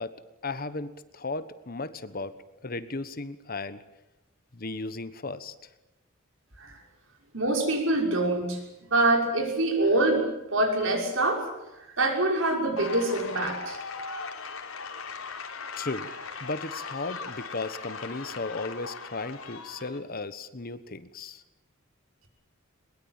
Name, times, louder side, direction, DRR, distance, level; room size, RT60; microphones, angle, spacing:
voice 1, 0.0-2.3 2.6-3.8 4.5-5.5 15.8-16.1 16.4-21.4, left 3 dB, 45° left, 13 dB, 1.2 m, -35 dB
voice 2, 7.3-8.6 8.9-10.3 10.5-11.5 11.8-13.8, right 2 dB, 60° right, 3 dB, 6.2 m, -25 dB
sound 1, 12.8-20.0, left 4 dB, 80° left, 3.6 m, -39 dB
22.0 x 22.0 x 9.0 m, 0.96 s
head